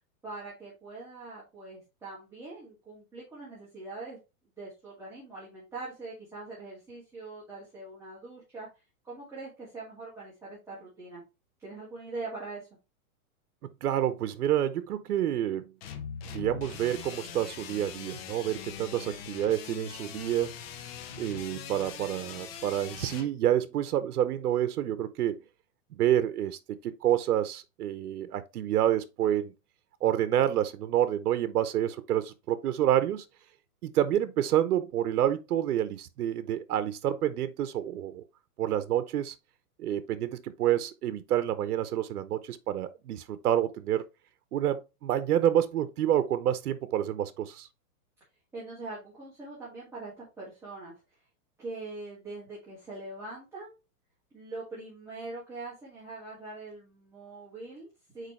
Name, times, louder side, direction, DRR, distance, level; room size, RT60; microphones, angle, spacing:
voice 1, 0.2-4.2 4.6-8.7 9.0-11.2 11.6-12.7 48.5-51.0 51.6-53.7 54.3-58.3, right 3 dB, 5° right, 2.4 m, -42 dB
voice 2, 13.8-15.7 16.3-20.5 21.2-25.4 25.9-29.5 30.0-33.2 33.8-38.2 38.6-39.3 39.8-44.0 44.5-47.7, right 11 dB, 85° right, 0.9 m, -28 dB
sound 1, 15.8-23.3, left 8 dB, 40° left, 1.0 m, -42 dB
6.6 x 4.6 x 3.2 m
supercardioid pair, 160°, 44 cm